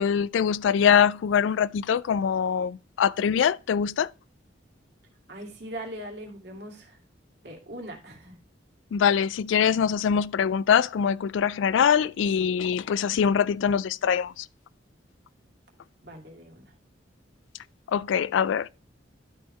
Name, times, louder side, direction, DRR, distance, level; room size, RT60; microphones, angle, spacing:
voice 1, 0.0-4.1 8.9-14.5 17.9-18.7, left 7 dB, 80° left, 0.3 m, -23 dB
voice 2, 5.3-7.0 7.4-8.4 16.0-16.7, right 1 dB, 60° right, 2.4 m, -40 dB
12.0 x 4.6 x 3.2 m
head